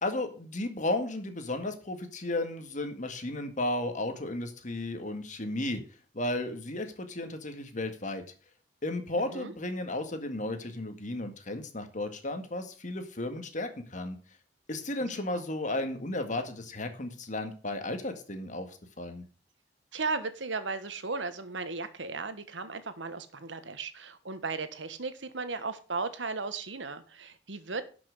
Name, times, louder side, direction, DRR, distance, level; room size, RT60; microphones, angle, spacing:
voice 1, 0.0-5.8 6.1-8.2 8.8-14.2 14.7-19.2, left 2 dB, 45° left, 7 dB, 1.9 m, -34 dB
voice 2, 9.2-9.5 15.0-15.4 19.9-27.8, right 4 dB, 85° right, 11 dB, 1.3 m, -36 dB
11.5 x 6.0 x 6.5 m, 0.38 s
head